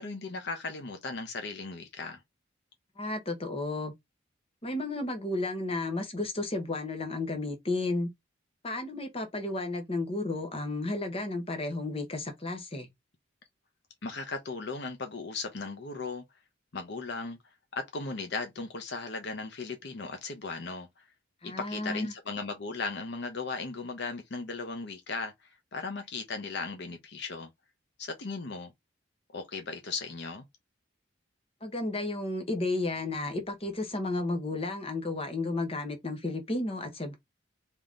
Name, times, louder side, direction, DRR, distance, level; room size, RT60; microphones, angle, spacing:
voice 1, 0.0-2.2 14.0-16.2 16.7-17.4 17.7-21.1 21.4-27.5 28.0-28.7 29.3-30.4, left 4 dB, 60° left, 0.8 m, -37 dB
voice 2, 3.0-3.9 4.6-8.1 8.6-12.9 21.4-22.1 31.6-37.2, left 2 dB, 30° left, 1.0 m, -33 dB
3.6 x 2.9 x 3.8 m
head